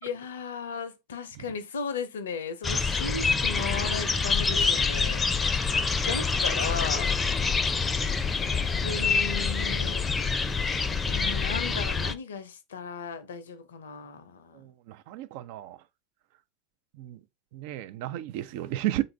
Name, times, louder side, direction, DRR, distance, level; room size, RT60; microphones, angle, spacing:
voice 1, 0.0-5.3 6.1-7.1 8.4-10.1 11.1-14.6, left 5 dB, 70° left, 0.5 m, -36 dB
sound 1, 2.6-12.1, left 4 dB, 20° left, 0.5 m, -26 dB
voice 2, 14.5-15.8 17.0-17.2 17.5-19.0, right 14 dB, 60° right, 0.4 m, -33 dB
3.8 x 2.4 x 3.3 m
figure-of-eight pair, 75°, 0 cm